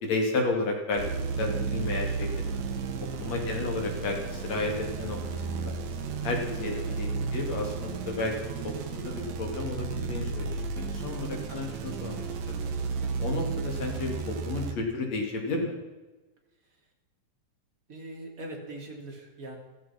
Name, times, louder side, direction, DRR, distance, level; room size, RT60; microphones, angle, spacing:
voice 1, 0.0-2.6 3.2-5.7 6.2-12.3 13.2-15.8, left 3 dB, 60° left, 2 dB, 3.9 m, -32 dB
sound 1, 1.0-14.7, right 5 dB, 70° right, 2.6 m, -33 dB
voice 2, 3.0-3.4 6.7-7.0 11.0-11.4 13.0-13.2 17.9-19.6, right 1 dB, 25° right, 0 dB, 3.3 m, -43 dB
15.0 x 15.0 x 6.0 m, 1.2 s
omnidirectional pair, 3.4 m